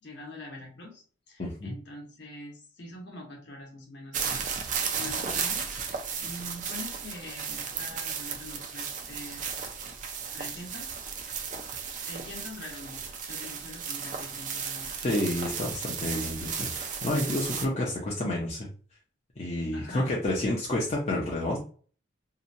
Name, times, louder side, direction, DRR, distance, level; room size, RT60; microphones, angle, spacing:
voice 1, 0.0-5.9 6.1-9.4 10.3-10.9 12.1-14.9 19.7-20.1, left 1 dB, 55° left, 0 dB, 0.9 m, -44 dB
voice 2, 1.4-1.8 15.0-18.7 19.4-21.6, left 1 dB, 30° left, -4 dB, 0.5 m, -29 dB
sound 1, 4.1-17.7, right 6 dB, 40° right, 0.4 m, -34 dB
2.8 x 2.2 x 2.5 m, 0.41 s
head